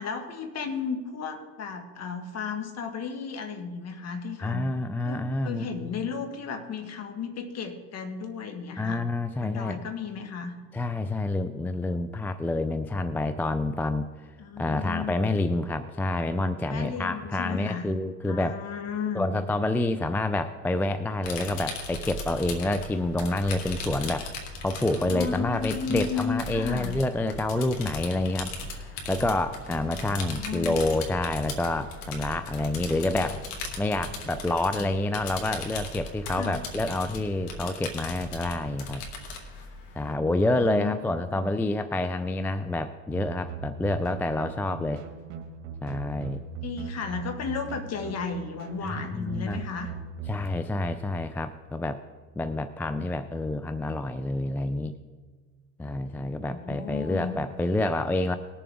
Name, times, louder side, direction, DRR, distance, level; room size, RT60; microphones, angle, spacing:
voice 1, 0.0-4.7 5.0-9.0 9.4-10.5 14.4-15.3 16.7-17.9 18.2-19.3 24.8-26.9 30.0-30.8 33.1-33.2 34.7-34.9 36.3-36.6 40.2-40.9 41.4-41.5 46.6-49.9 56.2-57.3, left 5 dB, 40° left, 6 dB, 1.8 m, -34 dB
voice 2, 4.4-6.0 8.8-9.8 10.7-14.1 14.6-18.6 19.1-24.3 24.6-33.5 33.8-39.0 40.0-45.0 45.8-46.4 48.8-49.6 50.3-52.0 52.4-54.9 55.8-58.4, left 2 dB, 5° left, 11 dB, 0.3 m, -28 dB
sound 1, 21.2-40.1, left 2 dB, 80° left, 2.1 m, -38 dB
sound 2, 43.1-50.5, right 5 dB, 80° right, 1.8 m, -40 dB
20.0 x 7.0 x 3.6 m, 1.4 s
supercardioid pair, 95°, 38 cm